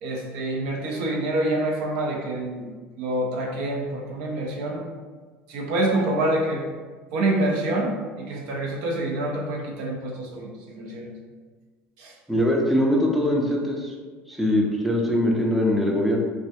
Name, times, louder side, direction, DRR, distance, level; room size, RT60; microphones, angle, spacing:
voice 1, 0.0-2.7 3.0-4.8 5.5-6.6 7.1-11.1 12.0-12.1, right 1 dB, 75° right, 0 dB, 0.5 m, -26 dB
voice 2, 12.3-13.9 14.3-16.2, left 1 dB, ahead, -1 dB, 0.4 m, -22 dB
2.3 x 2.0 x 2.8 m, 1.4 s
supercardioid pair, 105°, 5 cm